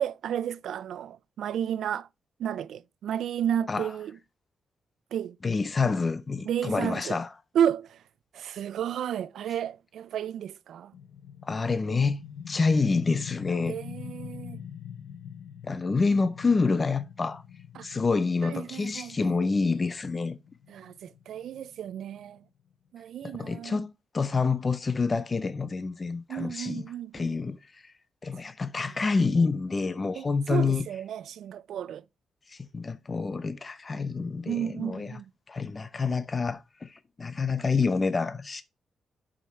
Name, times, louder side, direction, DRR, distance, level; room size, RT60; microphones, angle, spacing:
voice 1, 0.0-2.1 2.4-4.2 5.1-5.4 6.5-7.2 7.5-8.0 8.3-10.9 13.7-14.6 17.8-17.9 18.4-19.4 20.7-22.4 22.9-23.8 26.3-27.4 28.8-28.9 30.1-32.0 34.5-35.3, right 9 dB, 80° right, 0.4 m, -32 dB
voice 2, 5.4-7.3 11.4-12.2 12.5-13.7 15.6-17.4 17.8-20.4 23.2-23.9 24.1-26.9 27.1-27.9 28.2-30.9 32.5-35.1 35.5-38.6, left 4 dB, 25° left, 0.5 m, -27 dB
sound 1, 10.9-22.4, left 8 dB, 85° left, 0.8 m, -43 dB
7.0 x 5.1 x 4.3 m
wide cardioid pair, 165°, 0 cm